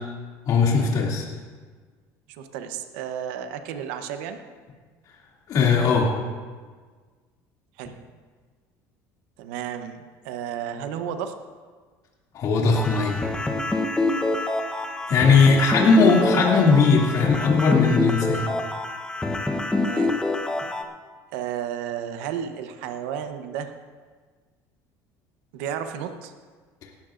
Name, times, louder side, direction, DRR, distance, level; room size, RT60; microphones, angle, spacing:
voice 1, 0.5-1.3 5.5-6.1 12.3-13.2 15.1-18.5, left 4 dB, 55° left, -2 dB, 2.5 m, -19 dB
voice 2, 2.3-4.4 7.8-7.9 9.4-11.3 15.7-15.8 19.8-20.1 21.3-23.7 25.5-26.3, right 9 dB, 90° right, 7 dB, 0.9 m, -32 dB
sound 1, 12.7-20.8, left 2 dB, 10° left, 0.9 m, -26 dB
18.5 x 13.0 x 2.5 m, 1.5 s
cardioid pair, 120°, 7 cm